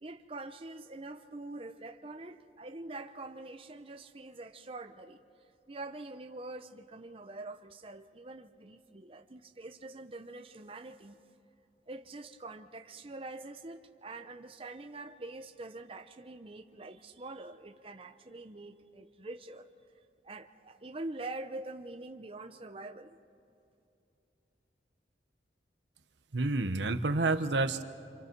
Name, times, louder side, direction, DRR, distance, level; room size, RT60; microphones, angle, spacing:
voice 1, 0.0-5.2 5.7-11.2 11.9-19.7 20.2-23.2, right 2 dB, 30° right, 6 dB, 0.7 m, -45 dB
voice 2, 26.3-27.8, right 2 dB, 85° right, 9 dB, 1.0 m, -29 dB
28.5 x 26.0 x 4.6 m, 2.8 s
head